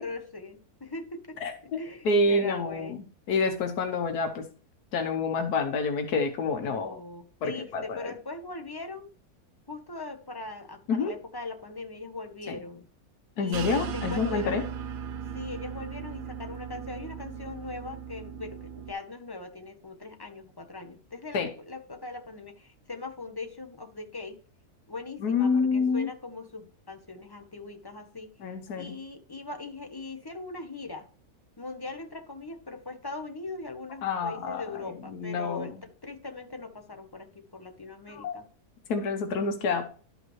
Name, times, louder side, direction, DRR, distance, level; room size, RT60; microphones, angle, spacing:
voice 1, 0.0-3.0 6.5-9.1 9.7-12.9 13.4-14.6 15.3-24.4 24.9-28.3 28.8-31.1 31.6-38.5 39.4-39.5, left 3 dB, 20° left, 5 dB, 0.7 m, -40 dB
voice 2, 1.4-1.8 2.0-3.0 3.3-4.5 4.9-7.0 7.4-8.1 10.9-11.1 12.5-12.6 13.4-14.6 21.3-21.5 25.2-26.1 28.4-28.9 34.0-34.6 35.1-35.7 38.1-38.4 38.9-39.8, left 3 dB, 85° left, 6 dB, 1.5 m, -27 dB
sound 1, 13.5-18.9, right 7 dB, 75° right, 0.4 m, -37 dB
12.0 x 5.3 x 3.1 m, 0.40 s
omnidirectional pair, 1.6 m